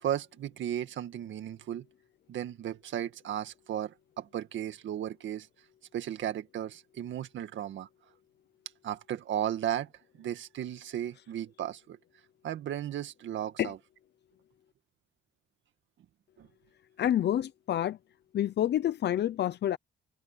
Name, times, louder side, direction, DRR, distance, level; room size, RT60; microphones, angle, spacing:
voice 1, 0.0-1.8 2.3-5.5 5.9-7.9 8.8-9.9 10.2-12.0 12.4-13.8 16.4-16.5, right 11 dB, 70° right, 2.0 m, -35 dB
voice 2, 17.0-18.0 18.3-19.8, left 11 dB, 60° left, 0.7 m, -28 dB
cardioid pair, 90°, 20 cm